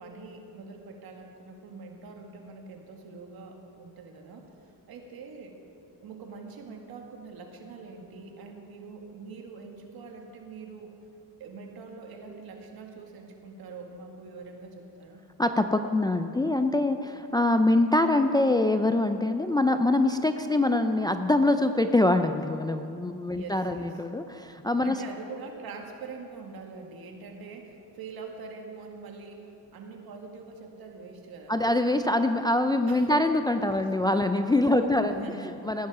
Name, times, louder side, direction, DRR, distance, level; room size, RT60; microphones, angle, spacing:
voice 1, 0.0-5.6 6.0-11.0 11.4-15.2 23.3-23.9 24.8-31.5 32.9-33.2 34.7-35.8, right 4 dB, 65° right, 2 dB, 2.0 m, -44 dB
voice 2, 15.4-25.0 31.5-35.9, left 2 dB, 10° left, 7 dB, 0.4 m, -24 dB
17.5 x 10.5 x 4.9 m, 2.8 s
cardioid pair, 100°, 40 cm